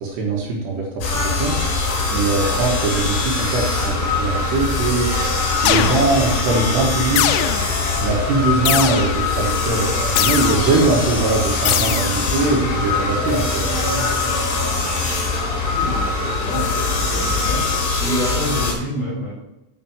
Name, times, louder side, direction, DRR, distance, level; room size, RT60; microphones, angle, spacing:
voice 1, 0.0-1.6 2.1-5.1 5.6-7.3 8.0-13.7, right 3 dB, 70° right, -2 dB, 3.3 m, -21 dB
sound 1, 1.0-18.7, left 3 dB, 70° left, 4.9 m, -22 dB
sound 2, 5.7-6.4 7.2-7.9 8.7-9.4 10.2-10.9 11.7-12.4, left 11 dB, 85° left, 2.6 m, -22 dB
voice 2, 15.7-17.6 18.0-19.3, equal, 35° left, -5 dB, 3.9 m, -27 dB
9.3 x 5.1 x 5.8 m, 0.96 s
omnidirectional pair, 5.6 m